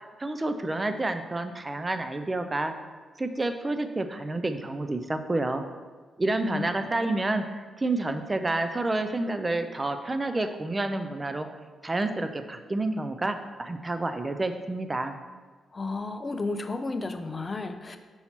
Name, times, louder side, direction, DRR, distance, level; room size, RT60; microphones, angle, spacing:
voice 1, 0.0-2.7 3.2-5.6 6.2-7.4 7.8-11.5 11.8-15.2, right 2 dB, 30° right, 8 dB, 0.5 m, -29 dB
voice 2, 6.4-6.7 7.1-7.2 15.7-18.0, left 3 dB, 35° left, 7 dB, 0.5 m, -33 dB
5.5 x 4.4 x 4.3 m, 1.4 s
supercardioid pair, 50°, 0 cm